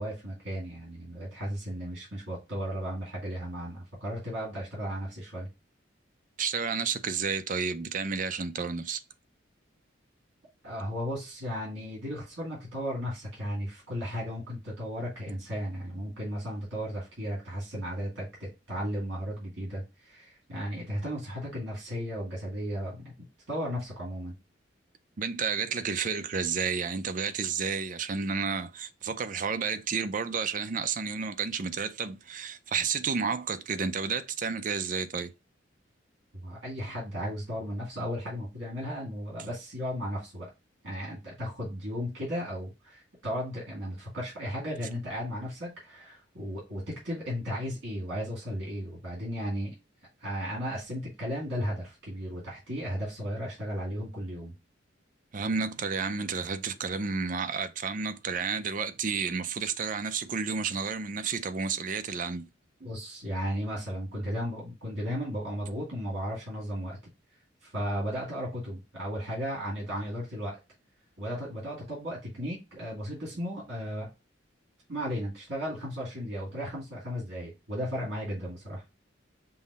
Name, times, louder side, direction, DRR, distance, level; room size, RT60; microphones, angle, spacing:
voice 1, 0.0-5.5 10.6-23.1 23.5-24.3 36.4-40.5 40.8-49.7 50.2-54.5 62.8-67.0 67.6-70.6 71.2-74.1 74.9-78.8, equal, 65° right, 2.3 m, -35 dB
voice 2, 6.4-9.0 25.2-35.3 55.3-62.5, right 5 dB, 40° right, 0.4 m, -31 dB
5.6 x 2.1 x 4.0 m
head